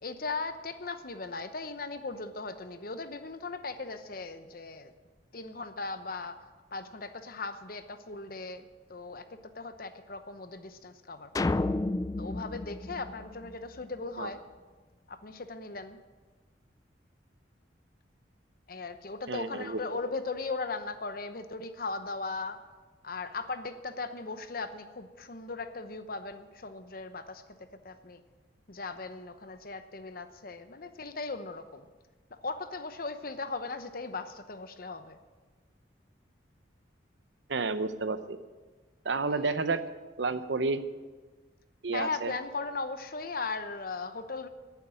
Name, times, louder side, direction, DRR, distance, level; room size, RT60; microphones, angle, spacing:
voice 1, 0.0-4.9 5.3-6.4 6.7-11.6 12.2-14.4 15.1-16.0 18.7-22.6 23.0-27.4 27.8-28.2 28.7-31.9 32.3-35.2 39.3-39.6 40.3-40.4 41.9-44.5, left 3 dB, 50° left, 10 dB, 0.9 m, -38 dB
sound 1, 11.4-13.8, left 2 dB, 20° left, 0.3 m, -31 dB
voice 2, 19.3-19.8 37.5-38.4 39.0-39.8 40.2-40.8 41.8-42.3, right 3 dB, 75° right, 12 dB, 0.7 m, -30 dB
11.0 x 9.3 x 8.9 m, 1.3 s
head